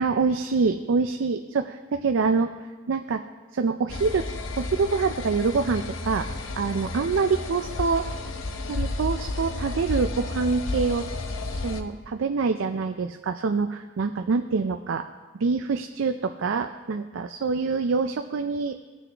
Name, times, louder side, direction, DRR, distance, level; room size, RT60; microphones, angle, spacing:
voice 1, 0.0-2.5 2.9-3.2 3.5-4.2 4.6-6.3 6.6-8.0 8.7-11.0 11.5-15.0 15.4-18.7, right 4 dB, 70° right, 6 dB, 0.4 m, -25 dB
sound 1, 3.9-11.8, left 2 dB, 80° left, 0.7 m, -32 dB
18.0 x 6.2 x 3.4 m, 1.4 s
head